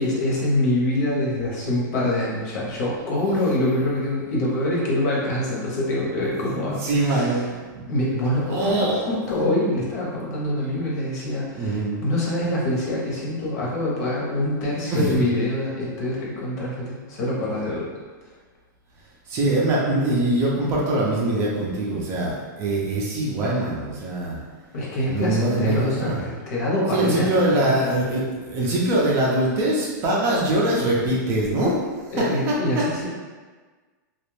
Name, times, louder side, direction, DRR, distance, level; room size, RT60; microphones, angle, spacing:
voice 1, 0.0-7.4 7.9-17.9 24.7-27.7 32.1-33.1, left 1 dB, 55° left, -5 dB, 0.9 m, -25 dB
voice 2, 6.4-7.9 8.5-9.5 11.5-12.0 14.9-15.3 19.3-24.4 25.1-26.2 26.9-31.8 32.2-32.8, right 1 dB, 25° right, -5 dB, 0.5 m, -23 dB
2.4 x 2.1 x 3.1 m, 1.4 s
hypercardioid pair, 150°, 10 cm